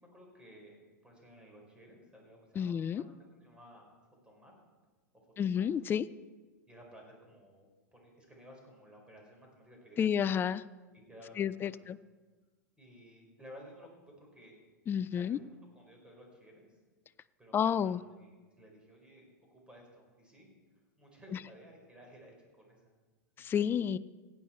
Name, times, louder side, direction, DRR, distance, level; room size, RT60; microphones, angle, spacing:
voice 1, 0.1-3.0 3.3-4.0 4.2-4.6 5.4-5.7 6.7-10.3 10.9-11.8 12.8-14.6 15.1-15.4 15.7-16.8 17.4-20.5 21.0-22.9, equal, 10° right, 0 dB, 4.7 m, -56 dB
voice 2, 2.6-3.0 5.4-6.1 10.0-10.6 11.4-12.0 14.9-15.4 17.5-18.0 23.4-24.0, left 8 dB, 20° left, 18 dB, 0.4 m, -30 dB
16.0 x 10.0 x 4.4 m, 1.3 s
hypercardioid pair, 100°, 10 cm